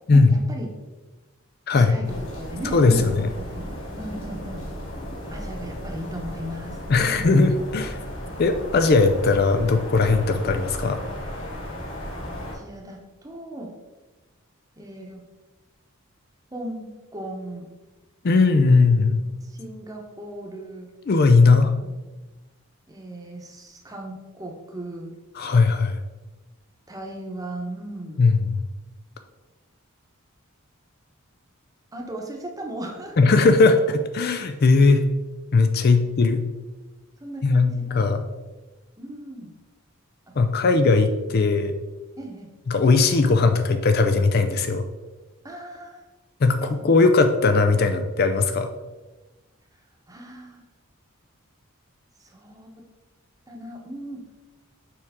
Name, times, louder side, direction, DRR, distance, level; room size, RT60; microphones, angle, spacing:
voice 1, 0.1-0.7 1.7-4.7 5.3-7.3 12.4-13.7 14.8-15.2 16.5-17.7 19.2-20.9 21.4-21.9 22.9-25.1 26.9-28.2 31.9-33.3 35.8-36.0 37.2-38.1 39.0-39.5 42.2-42.5 45.4-46.0 46.5-46.9 50.1-50.6 52.2-52.7 53.5-54.2, right 1 dB, 15° right, 1 dB, 0.9 m, -37 dB
voice 2, 1.7-2.0 2.7-3.3 6.9-8.0 8.4-11.0 18.2-19.3 21.1-21.7 25.4-26.0 28.2-28.6 33.2-35.0 35.5-36.4 37.4-38.2 40.4-41.7 42.7-44.9 46.4-48.7, left 3 dB, 45° left, 8 dB, 0.4 m, -18 dB
sound 1, 2.0-12.6, equal, 65° left, 2.1 m, -35 dB
7.0 x 4.6 x 3.6 m, 1.2 s
head